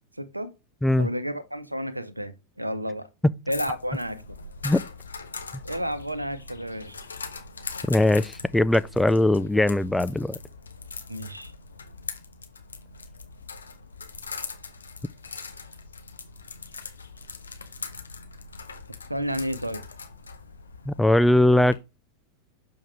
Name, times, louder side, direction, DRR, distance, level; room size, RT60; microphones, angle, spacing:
voice 1, 0.2-0.5 1.0-3.1 3.5-4.4 5.6-7.0 11.1-11.5 19.1-19.8, equal, 85° right, 0.9 m, -31 dB
sound 1, 3.5-21.7, left 4 dB, 75° left, 1.2 m, -41 dB
voice 2, 7.9-10.3 20.9-21.8, left 1 dB, 5° left, 0.3 m, -20 dB
7.3 x 5.5 x 3.4 m
figure-of-eight pair, 90°, 0 cm